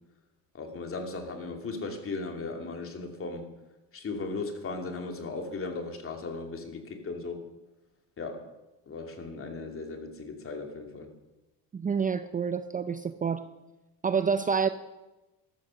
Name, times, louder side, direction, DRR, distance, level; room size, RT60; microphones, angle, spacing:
voice 1, 0.5-3.5 3.9-7.4 8.2-8.5 8.9-11.1, left 3 dB, 35° left, 4 dB, 2.7 m, -37 dB
voice 2, 11.7-13.5 14.0-14.7, right 6 dB, 20° right, 11 dB, 0.5 m, -28 dB
13.0 x 13.0 x 6.4 m, 1.0 s
cardioid pair, 115°, 38 cm